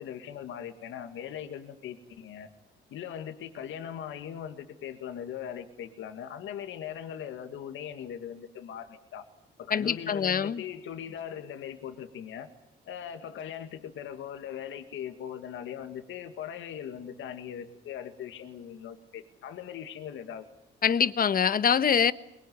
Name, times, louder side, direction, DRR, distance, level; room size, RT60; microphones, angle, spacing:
voice 1, 0.0-2.5 2.9-9.2 9.6-12.5 12.9-20.5, left 9 dB, 80° left, 2.1 m, -40 dB
voice 2, 9.7-10.6 20.8-22.1, left 7 dB, 45° left, 1.2 m, -24 dB
23.0 x 22.5 x 9.5 m
cardioid pair, 90°, 20 cm